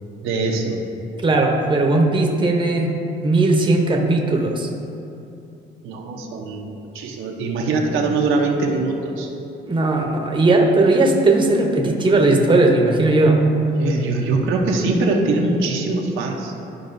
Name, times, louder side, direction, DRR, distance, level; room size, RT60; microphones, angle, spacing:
voice 1, 0.2-0.8 5.8-9.3 13.8-16.5, right 3 dB, 85° right, 0 dB, 0.9 m, -22 dB
voice 2, 1.2-3.0 3.2-4.7 9.7-13.4, right 2 dB, 25° right, 1 dB, 0.9 m, -17 dB
12.0 x 4.7 x 2.6 m, 2.7 s
cardioid pair, 90°, 20 cm